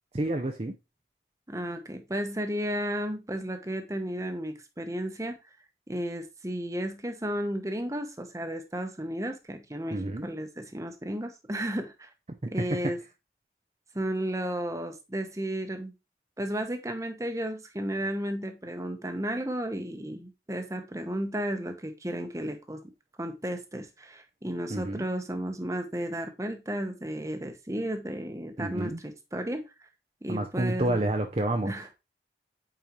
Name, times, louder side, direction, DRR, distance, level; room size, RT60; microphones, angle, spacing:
voice 1, 0.1-0.7 9.9-10.3 24.7-25.1 28.6-29.0 30.3-31.9, right 1 dB, 35° right, 0.7 m, -29 dB
voice 2, 1.5-5.4 5.9-12.1 12.5-13.0 13.9-15.9 16.4-22.8 23.2-29.9 30.2-31.0 31.7-31.9, right 1 dB, 20° right, 1.0 m, -33 dB
8.7 x 4.4 x 3.1 m
head